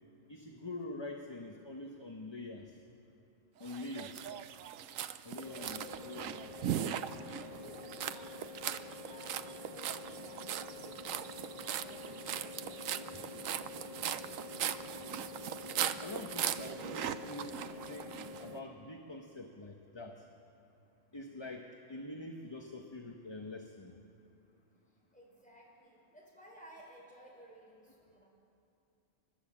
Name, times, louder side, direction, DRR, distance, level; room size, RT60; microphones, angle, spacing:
voice 1, 0.3-2.8 3.6-4.1 5.2-5.8 6.0-6.3 13.1-13.2 16.0-18.1 18.4-20.2 21.1-24.0, left 2 dB, 25° left, 2 dB, 0.9 m, -45 dB
sound 1, 3.7-18.4, right 10 dB, 80° right, 1.0 m, -39 dB
sound 2, 5.4-18.6, left 2 dB, 30° right, 1.1 m, -47 dB
voice 2, 5.5-6.4 7.1-12.9 24.9-28.3, equal, 5° left, -4 dB, 5.1 m, -57 dB
29.0 x 12.0 x 7.4 m, 2.7 s
omnidirectional pair, 1.4 m